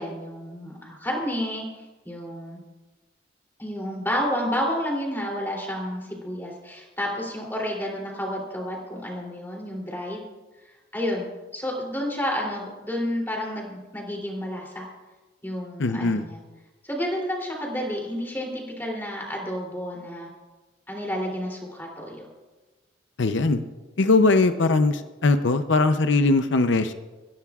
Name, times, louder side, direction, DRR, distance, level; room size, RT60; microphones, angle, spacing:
voice 1, 0.0-2.6 3.6-10.2 10.9-14.9 15.4-16.4 16.8-20.3 20.9-22.3, equal, 10° left, -1 dB, 3.0 m, -30 dB
voice 2, 15.8-16.2 23.2-23.6 24.0-26.9, left 3 dB, 80° left, 9 dB, 0.6 m, -20 dB
22.0 x 15.5 x 2.4 m, 1.2 s
head